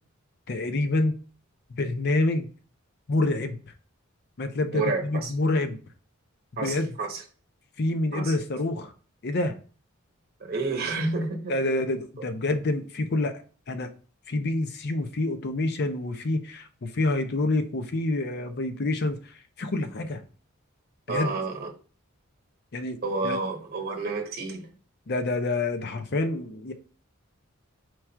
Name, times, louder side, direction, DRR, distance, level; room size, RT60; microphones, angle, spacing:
voice 1, 0.5-1.2 1.8-2.5 3.1-3.6 4.4-5.8 6.6-7.0 7.8-8.9 9.2-9.5 11.5-13.4 13.7-13.9 14.3-19.3 19.6-20.2 21.1-21.3 22.7-23.0 23.2-23.4 25.1-26.7, left 2 dB, 50° left, 0.5 m, -27 dB
voice 2, 4.7-5.3 6.6-7.2 8.1-8.3 10.4-11.7 21.1-21.7 23.0-24.7, right 3 dB, 45° right, 1.0 m, -30 dB
4.6 x 2.4 x 4.4 m
head